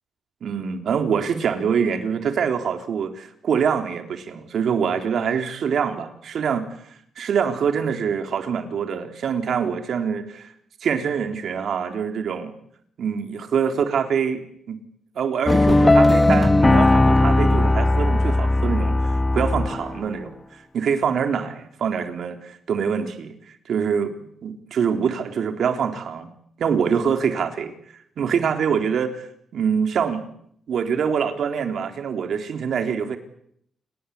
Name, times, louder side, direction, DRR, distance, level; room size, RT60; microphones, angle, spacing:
voice 1, 0.4-6.6 7.2-10.5 10.8-12.5 13.0-14.8 15.2-20.3 20.7-23.3 23.7-24.1 24.4-26.3 26.6-27.7 28.2-29.3 29.5-30.3 30.7-33.2, right 7 dB, 70° right, 6 dB, 3.8 m, -24 dB
sound 1, 15.5-20.0, left 2 dB, 20° left, 1.5 m, -17 dB
29.0 x 20.5 x 8.6 m, 0.70 s
cardioid pair, 105°, 0 cm